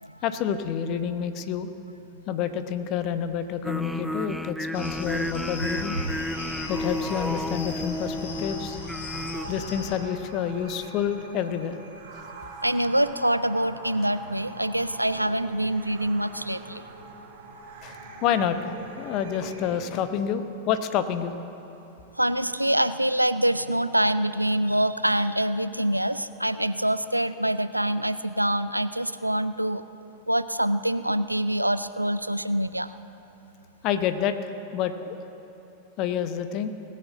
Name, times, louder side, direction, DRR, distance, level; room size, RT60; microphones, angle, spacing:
voice 1, 0.2-1.7 2.3-6.0 6.7-8.8 9.5-11.8 17.8-21.4 33.8-35.2 36.0-36.7, left 8 dB, 40° left, 10 dB, 0.9 m, -28 dB
sound 1, 3.6-9.5, equal, ahead, 0.3 m, -32 dB
sound 2, 4.7-10.0, left 3 dB, 60° left, 2.0 m, -38 dB
sound 3, 9.1-19.8, right 3 dB, 50° right, 1.9 m, -43 dB
voice 2, 12.6-16.8 22.2-29.8 30.3-32.9, right 1 dB, 90° right, 13 dB, 0.4 m, -25 dB
19.0 x 6.6 x 7.8 m, 2.9 s
figure-of-eight pair, 90°, 0 cm